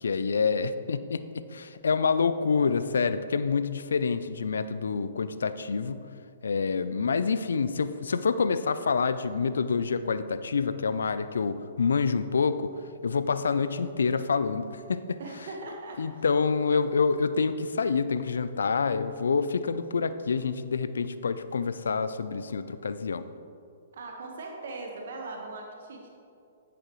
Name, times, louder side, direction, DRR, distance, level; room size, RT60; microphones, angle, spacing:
voice 1, 0.0-6.1 6.4-12.7 13.0-15.2 16.0-23.2, left 5 dB, 75° left, 13 dB, 0.4 m, -27 dB
voice 2, 15.2-16.2 23.9-26.1, right 2 dB, 65° right, 1 dB, 1.3 m, -40 dB
10.0 x 8.6 x 3.1 m, 2.5 s
hypercardioid pair, 125°, 0 cm